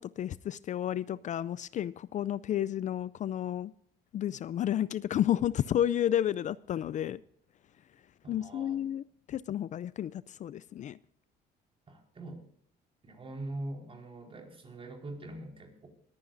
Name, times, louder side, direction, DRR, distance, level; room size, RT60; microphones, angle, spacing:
voice 1, 0.0-3.7 4.1-7.2 8.3-11.0, left 11 dB, 45° left, 0.4 m, -31 dB
voice 2, 8.2-8.8 11.9-12.4 13.0-15.9, right 1 dB, 35° right, 4.7 m, -43 dB
20.5 x 15.0 x 2.6 m
cardioid pair, 110°, 17 cm